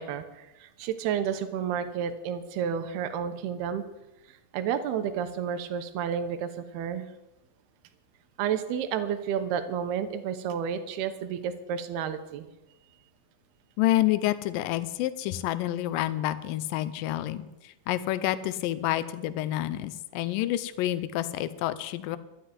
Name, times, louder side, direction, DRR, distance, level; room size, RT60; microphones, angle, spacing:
voice 1, 0.0-3.8 4.5-7.1 8.4-12.5, right 8 dB, 80° right, 9 dB, 2.9 m, -31 dB
voice 2, 13.8-22.2, left 14 dB, 75° left, 14 dB, 2.1 m, -28 dB
12.0 x 7.8 x 9.6 m, 0.99 s
omnidirectional pair, 4.6 m